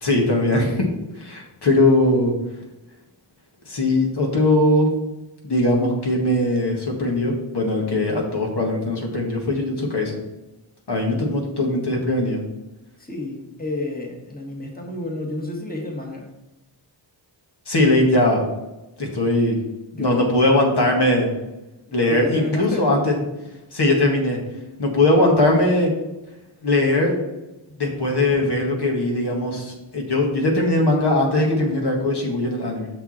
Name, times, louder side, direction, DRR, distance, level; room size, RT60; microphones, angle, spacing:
voice 1, 0.0-0.9 1.2-2.3 3.7-4.9 5.4-10.2 10.9-12.4 17.7-18.5 19.0-19.6 20.0-21.3 21.9-23.1 23.7-24.4 24.8-25.9 26.6-27.1 27.8-32.9, left 1 dB, 50° left, 0 dB, 1.8 m, -20 dB
voice 2, 13.0-16.3 19.9-20.3 21.9-22.9, left 2 dB, 20° left, 0 dB, 1.8 m, -30 dB
6.2 x 5.8 x 4.3 m, 0.98 s
cardioid pair, 55°, 49 cm